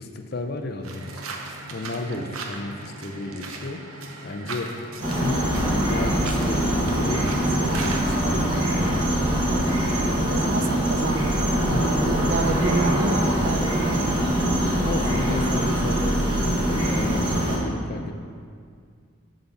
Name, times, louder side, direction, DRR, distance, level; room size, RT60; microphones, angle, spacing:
voice 1, 0.0-9.1 11.7-12.1 14.8-18.1, left 2 dB, 45° left, 6 dB, 0.5 m, -33 dB
sound 1, 0.8-8.3, right 3 dB, 85° right, 0.8 m, -38 dB
sound 2, 5.0-17.6, equal, 25° right, 1.3 m, -23 dB
voice 2, 9.9-14.2, right 3 dB, 55° right, 8 dB, 0.4 m, -30 dB
8.2 x 4.0 x 6.9 m, 2.2 s
head